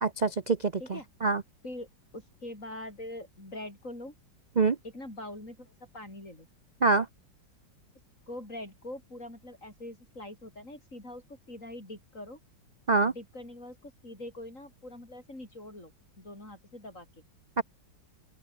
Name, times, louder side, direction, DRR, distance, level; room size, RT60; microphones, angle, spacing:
voice 1, 0.0-0.7 1.2-1.4 4.6-4.8 6.8-7.1 12.9-13.1 17.6-17.7, right 3 dB, 50° right, 0.5 m, -24 dB
voice 2, 2.1-4.1 4.8-6.5 8.3-12.4 13.0-17.1, left 1 dB, 40° left, 8.0 m, -43 dB
open air
omnidirectional pair, 2.0 m